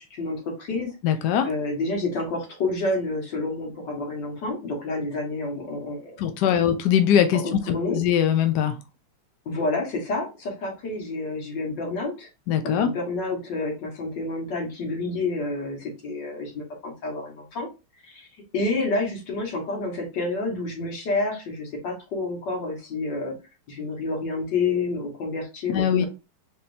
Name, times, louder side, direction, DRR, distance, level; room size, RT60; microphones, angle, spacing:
voice 1, 0.1-0.9 1.4-6.2 7.3-8.0 9.5-12.3 12.6-17.7 18.0-18.3 18.5-23.4 23.7-26.1, left 3 dB, 55° left, 0 dB, 2.1 m, -29 dB
voice 2, 1.0-1.5 6.2-8.8 12.5-12.9 25.7-26.1, left 9 dB, 80° left, 7 dB, 0.9 m, -21 dB
4.1 x 3.6 x 2.6 m, 0.28 s
omnidirectional pair, 2.4 m